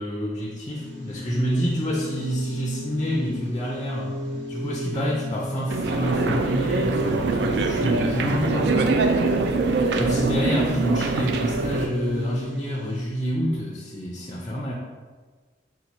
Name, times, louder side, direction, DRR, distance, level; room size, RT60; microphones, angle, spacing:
voice 1, 0.0-4.2 4.5-8.7 10.0-14.7, equal, 20° left, -3 dB, 0.4 m, -28 dB
sound 1, 0.7-13.0, left 1 dB, 85° right, 0.9 m, -33 dB
sound 2, 5.7-11.9, right 3 dB, 60° right, 0.3 m, -23 dB
4.0 x 2.4 x 4.4 m, 1.4 s
head